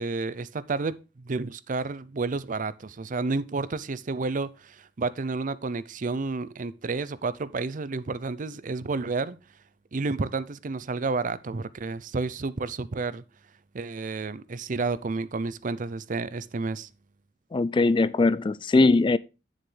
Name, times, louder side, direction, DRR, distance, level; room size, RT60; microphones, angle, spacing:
voice 1, 0.0-9.4 9.9-13.2 13.7-16.9, right 3 dB, 45° right, 0.5 m, -31 dB
voice 2, 17.5-19.2, left 3 dB, 25° left, 0.3 m, -21 dB
9.1 x 7.3 x 3.3 m
head